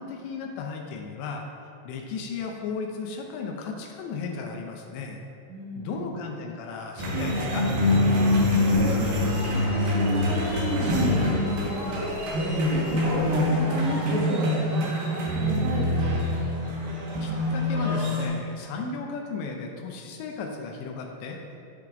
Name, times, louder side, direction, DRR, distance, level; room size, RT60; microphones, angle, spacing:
voice 1, 0.0-1.5 1.8-5.2 5.8-7.7 17.2-21.4, left 4 dB, 80° left, 1 dB, 2.8 m, -35 dB
voice 2, 5.5-6.2 8.0-12.2 12.6-16.0, right 2 dB, 85° right, -1 dB, 3.5 m, -34 dB
sound 1, 7.0-18.3, left 1 dB, 65° right, 3.0 m, -25 dB
sound 2, 8.5-13.6, left 1 dB, 65° left, 2.5 m, -36 dB
15.5 x 5.8 x 2.6 m, 2.6 s
omnidirectional pair, 5.5 m